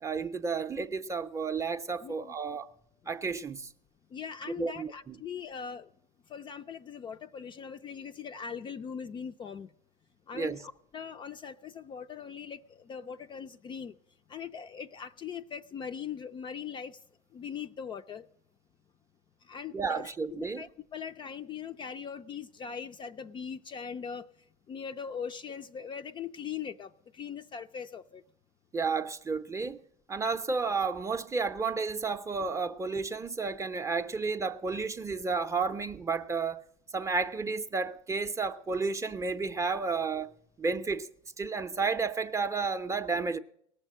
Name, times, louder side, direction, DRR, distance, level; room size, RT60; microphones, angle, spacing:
voice 1, 0.0-2.7 3.1-3.7 4.6-5.2 10.3-10.6 19.7-20.6 28.7-29.8 30.1-36.6 36.9-40.3 40.6-41.1 41.4-43.4, right 4 dB, 15° right, 0.6 m, -32 dB
voice 2, 2.0-2.3 4.1-5.9 6.3-9.7 10.3-13.9 14.3-17.0 17.3-18.3 19.5-24.3 24.7-28.2, left 7 dB, 25° left, 0.4 m, -40 dB
18.0 x 6.6 x 7.4 m
hypercardioid pair, 100°, 17 cm